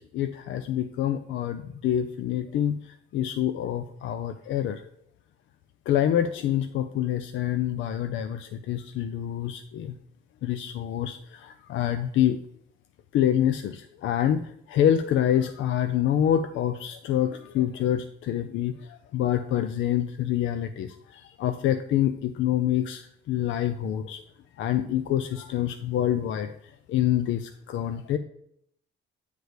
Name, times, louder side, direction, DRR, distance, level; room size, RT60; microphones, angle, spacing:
voice 1, 0.0-4.8 5.9-9.9 10.4-12.4 13.1-24.2 24.6-26.5 26.9-28.2, left 10 dB, 75° left, 8 dB, 0.5 m, -26 dB
9.4 x 3.3 x 6.6 m, 0.70 s
cardioid pair, 90°, 20 cm